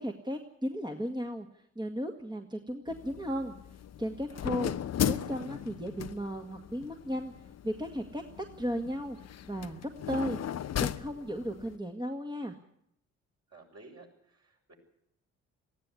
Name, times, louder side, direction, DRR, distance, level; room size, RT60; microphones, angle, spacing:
voice 1, 0.0-1.5 1.8-3.5 4.0-4.7 5.1-7.3 7.6-8.2 8.6-9.2 9.4-10.4 10.8-12.6, equal, 10° right, 4 dB, 2.0 m, -35 dB
sound 1, 2.9-11.8, left 10 dB, 45° left, 0.9 m, -37 dB
voice 2, 13.5-14.7, right 2 dB, 40° right, 1 dB, 7.2 m, -54 dB
19.5 x 15.0 x 9.9 m, 0.74 s
hypercardioid pair, 45°, 37 cm